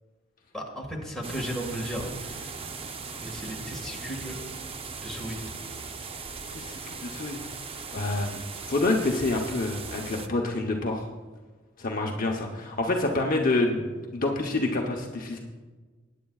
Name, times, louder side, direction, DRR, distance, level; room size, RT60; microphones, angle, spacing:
voice 1, 0.5-2.6 3.1-4.4 5.0-5.5 7.8-7.9, equal, 5° left, -2 dB, 1.8 m, -35 dB
sound 1, 1.2-10.3, right 4 dB, 30° right, 0.5 m, -38 dB
voice 2, 6.5-11.1 11.8-15.4, left 2 dB, 45° left, 1 dB, 0.9 m, -28 dB
19.5 x 9.3 x 2.4 m, 1.3 s
head